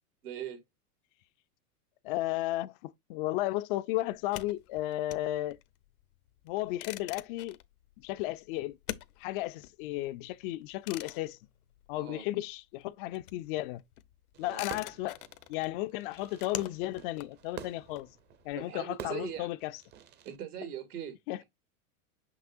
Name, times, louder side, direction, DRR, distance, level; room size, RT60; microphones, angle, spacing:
voice 1, 0.2-0.6 11.9-12.3 14.4-14.7 18.5-19.5 20.2-21.4, right 9 dB, 85° right, 2.7 m, -41 dB
voice 2, 2.0-5.6 6.5-7.6 8.0-8.8 9.2-11.4 11.9-13.8 14.4-15.2 15.5-18.1 18.5-19.7 21.3-21.4, left 16 dB, 40° left, 0.4 m, -34 dB
sound 1, 4.1-12.5 12.8-18.5, left 15 dB, 75° left, 0.8 m, -46 dB
Fireworks, 14.3-20.4, right 9 dB, 25° right, 0.6 m, -48 dB
6.1 x 6.0 x 2.5 m
hypercardioid pair, 125°, 44 cm